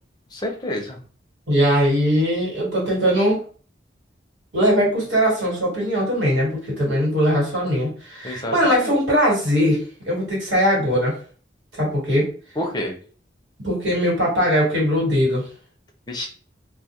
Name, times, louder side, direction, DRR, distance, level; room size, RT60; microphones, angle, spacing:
voice 1, 0.3-1.0 8.2-8.9 12.6-13.0 16.1-16.3, left 1 dB, 25° left, 2 dB, 0.5 m, -28 dB
voice 2, 1.5-3.4 4.5-11.2 11.8-12.3 13.6-15.5, equal, 75° right, -3 dB, 1.4 m, -20 dB
2.3 x 2.1 x 2.8 m, 0.40 s
head